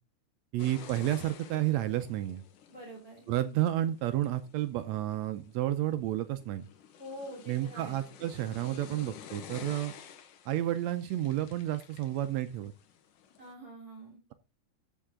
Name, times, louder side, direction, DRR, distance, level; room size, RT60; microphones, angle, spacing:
voice 1, 0.5-2.4 3.3-6.6 7.5-10.0 10.4-12.7, right 13 dB, 75° right, 11 dB, 1.7 m, -31 dB
sound 1, 0.6-13.5, left 8 dB, 85° left, 2.8 m, -51 dB
voice 2, 2.7-3.3 7.0-8.0 13.4-14.2, equal, 25° right, -3 dB, 3.9 m, -45 dB
14.0 x 5.6 x 3.7 m, 0.28 s
omnidirectional pair, 3.6 m